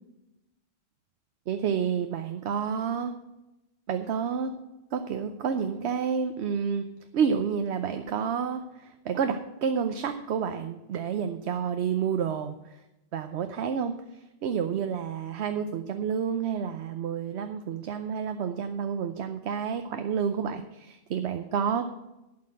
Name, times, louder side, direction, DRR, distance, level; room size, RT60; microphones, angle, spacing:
voice 1, 1.5-3.1 3.9-4.5 4.9-6.9 7.1-12.8 13.1-13.9 14.4-21.8, right 7 dB, 85° right, 7 dB, 0.9 m, -29 dB
11.5 x 5.9 x 8.7 m, 0.98 s
omnidirectional pair, 1.1 m